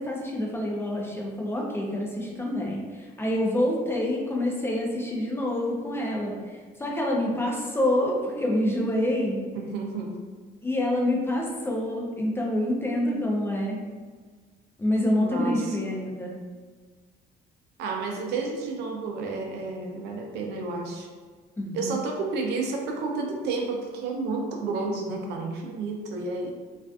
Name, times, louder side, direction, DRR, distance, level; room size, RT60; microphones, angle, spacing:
voice 1, 0.0-6.3 6.8-9.4 10.6-13.8 14.8-16.3 21.6-22.0, left 1 dB, 15° left, -1 dB, 0.4 m, -27 dB
voice 2, 9.5-10.2 15.2-15.8 17.8-21.1 21.7-26.5, right 3 dB, 80° right, 1 dB, 0.5 m, -31 dB
2.4 x 2.3 x 2.3 m, 1.5 s
cardioid pair, 110°, 17 cm